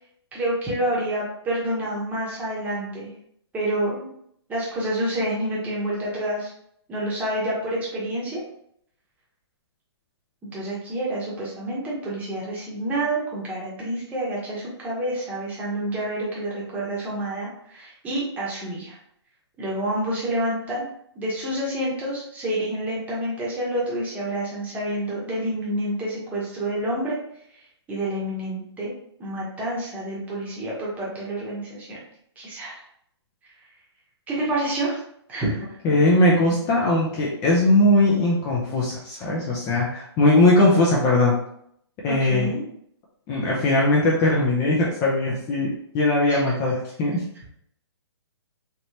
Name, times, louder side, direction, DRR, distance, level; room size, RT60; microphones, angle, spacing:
voice 1, 0.3-3.1 3.5-4.1 4.5-6.5 6.9-8.4 10.5-19.0 19.6-20.9 21.1-27.2 27.9-28.9 29.2-32.0 32.4-32.7 34.3-35.0 35.3-35.8 42.0-42.6 46.3-46.4, right 1 dB, 10° right, -5 dB, 1.0 m, -28 dB
voice 2, 35.8-41.3 42.0-42.5 43.3-47.2, left 2 dB, 20° left, -4 dB, 0.5 m, -20 dB
3.2 x 2.9 x 2.8 m, 0.70 s
hypercardioid pair, 150°, 14 cm